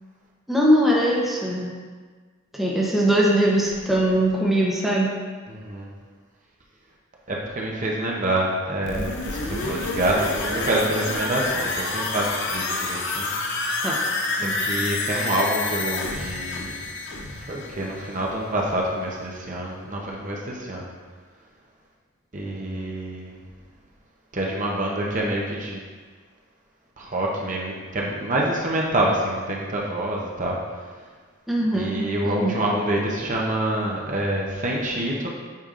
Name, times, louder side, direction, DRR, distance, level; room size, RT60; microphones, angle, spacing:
voice 1, 0.5-1.7 2.5-5.1 13.8-14.0 14.4-14.7 31.5-32.6, right 1 dB, ahead, -5 dB, 0.8 m, -21 dB
voice 2, 5.5-5.9 7.3-13.3 14.4-16.7 17.4-20.9 22.3-23.3 24.3-25.8 27.0-30.6 31.7-35.3, right 1 dB, 35° right, -2 dB, 0.7 m, -26 dB
sound 1, 8.8-18.6 18.9-19.0, left 3 dB, 55° left, 0.7 m, -28 dB
8.3 x 5.2 x 2.5 m, 1.5 s
head